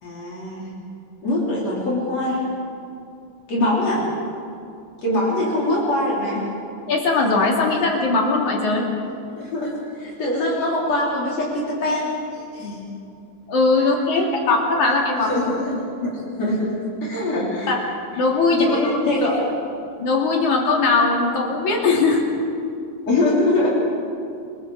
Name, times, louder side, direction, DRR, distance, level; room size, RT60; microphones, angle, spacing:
voice 1, 0.0-0.7 1.2-2.4 3.5-4.1 5.0-6.5 9.4-12.8 13.8-13.9 14.1-14.3 15.1-16.7 17.0-17.7 18.5-19.5 23.0-23.7, left 1 dB, 60° left, -6 dB, 4.9 m, -23 dB
voice 2, 6.9-8.9 13.5-15.3 17.7-17.8 18.2-18.8 20.0-22.2, left 3 dB, 80° left, 0 dB, 4.2 m, -19 dB
29.0 x 22.0 x 4.9 m, 2.5 s
omnidirectional pair, 3.4 m